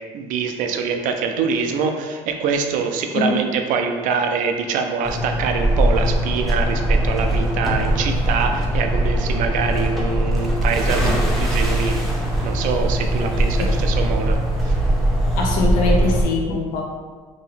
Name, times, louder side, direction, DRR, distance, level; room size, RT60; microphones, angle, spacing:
voice 1, 0.1-12.1 12.4-14.8, right 5 dB, 75° right, 5 dB, 0.5 m, -24 dB
sound 1, 5.0-16.2, right 1 dB, ahead, 0.8 m, -20 dB
sound 2, 5.9-13.8, left 2 dB, 45° left, 0.6 m, -37 dB
voice 2, 15.4-16.8, left 3 dB, 85° left, 0 dB, 0.7 m, -22 dB
2.8 x 2.6 x 4.3 m, 1.5 s
cardioid pair, 100°, 14 cm